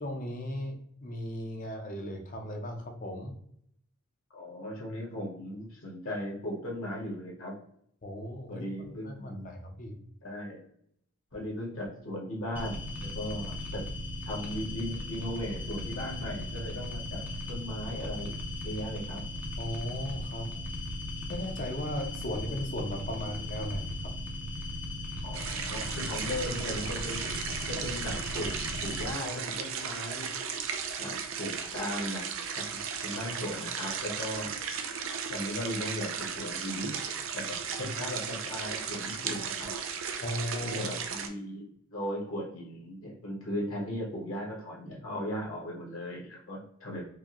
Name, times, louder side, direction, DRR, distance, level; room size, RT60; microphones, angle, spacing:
voice 1, 0.0-3.3 8.0-10.0 19.6-20.5 21.3-24.1 37.8-38.0 40.2-40.8, left 1 dB, 35° left, 3 dB, 0.6 m, -37 dB
voice 2, 4.3-7.5 8.5-9.5 10.2-10.6 11.3-13.8 14.2-17.2 17.5-18.3 18.6-19.2 25.2-27.2 27.7-30.3 31.0-32.3 32.5-34.5 35.3-36.9 37.3-39.7 40.6-47.1, left 1 dB, 65° left, -2 dB, 1.4 m, -37 dB
sound 1, 12.5-29.1, left 1 dB, 5° right, 0.5 m, -37 dB
sound 2, 25.3-41.3, right 6 dB, 65° right, 0.5 m, -36 dB
4.7 x 2.2 x 2.9 m, 0.69 s
head